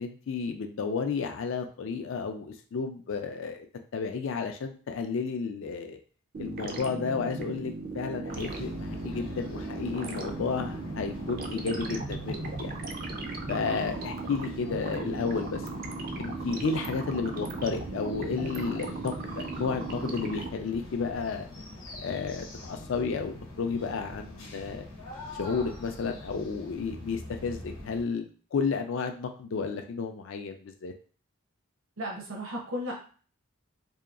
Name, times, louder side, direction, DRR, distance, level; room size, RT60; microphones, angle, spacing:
voice 1, 0.0-3.7 3.9-6.0 6.4-12.7 13.5-15.6 16.2-21.4 22.0-24.9 25.4-30.9, left 5 dB, 60° left, 6 dB, 0.4 m, -32 dB
sound 1, 6.3-20.5, right 3 dB, 40° right, 0.3 m, -37 dB
sound 2, 8.3-28.0, left 1 dB, 90° left, 0.8 m, -43 dB
voice 2, 32.0-32.9, equal, 70° right, -1 dB, 0.7 m, -34 dB
2.7 x 2.3 x 2.4 m, 0.40 s
head